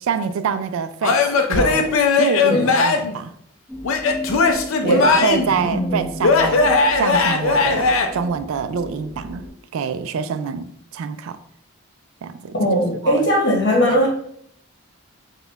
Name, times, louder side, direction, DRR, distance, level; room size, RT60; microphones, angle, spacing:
voice 1, 0.0-3.3 4.8-9.5 9.7-11.4 12.2-13.3 13.9-14.1, right 6 dB, 70° right, 0.3 m, -26 dB
Male speech man speaking / Yell / Laughter, 1.0-3.2 3.8-5.6 6.2-8.1, left 4 dB, 70° left, 0.5 m, -18 dB
sound 1, 3.7-9.5, equal, ahead, 0.8 m, -35 dB
voice 2, 5.5-6.0 12.5-14.1, equal, 55° left, 1.1 m, -19 dB
3.9 x 2.3 x 3.9 m
head